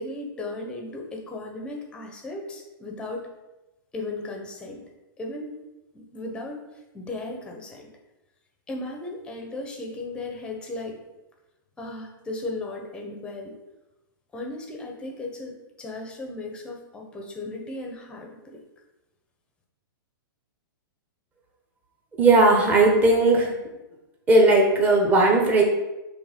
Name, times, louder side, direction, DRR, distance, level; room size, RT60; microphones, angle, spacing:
voice 1, 0.0-3.3 3.9-4.8 5.2-5.6 5.9-6.6 6.9-7.9 8.7-11.0 11.8-13.5 14.3-18.6, left 2 dB, 10° left, 2 dB, 0.9 m, -36 dB
voice 2, 22.2-23.5 24.3-25.6, right 2 dB, 15° right, 0 dB, 1.1 m, -17 dB
7.8 x 3.4 x 5.2 m, 1.0 s
hypercardioid pair, 165°, 12 cm